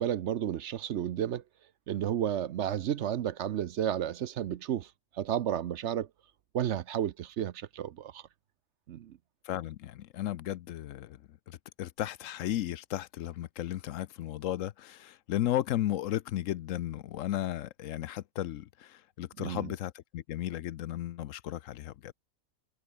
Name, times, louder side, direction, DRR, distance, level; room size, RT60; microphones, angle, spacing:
voice 1, 0.0-1.4 1.9-6.1 6.5-8.2 8.9-9.2 19.4-19.7, right 10 dB, 65° right, 0.9 m, -32 dB
voice 2, 9.4-22.1, left 13 dB, 75° left, 1.0 m, -35 dB
omnidirectional pair, 1.4 m